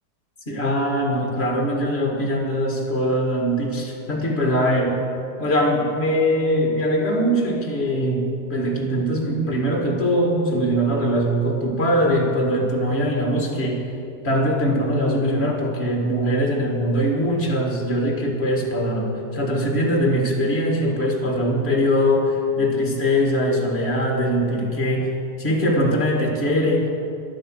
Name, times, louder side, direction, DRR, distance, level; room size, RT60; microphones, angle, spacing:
voice 1, 0.5-5.0 5.4-13.9 14.2-26.9, equal, 40° left, 1 dB, 2.2 m, -22 dB
12.0 x 10.0 x 7.7 m, 2.6 s
omnidirectional pair, 1.6 m